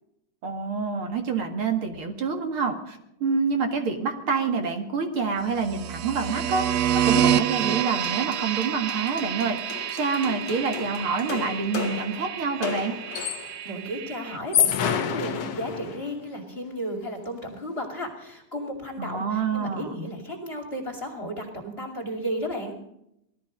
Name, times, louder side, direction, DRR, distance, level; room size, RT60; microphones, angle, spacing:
voice 1, 0.4-13.0 19.0-19.9, right 5 dB, 50° right, 5 dB, 2.4 m, -27 dB
sound 1, 5.6-14.4, right 10 dB, 75° right, 1.6 m, -28 dB
sound 2, 7.7-13.7 14.3-16.2, left 9 dB, 60° left, 2.1 m, -30 dB
voice 2, 13.4-22.8, equal, 20° left, 2 dB, 2.5 m, -34 dB
18.5 x 13.0 x 5.2 m, 0.79 s
omnidirectional pair, 3.4 m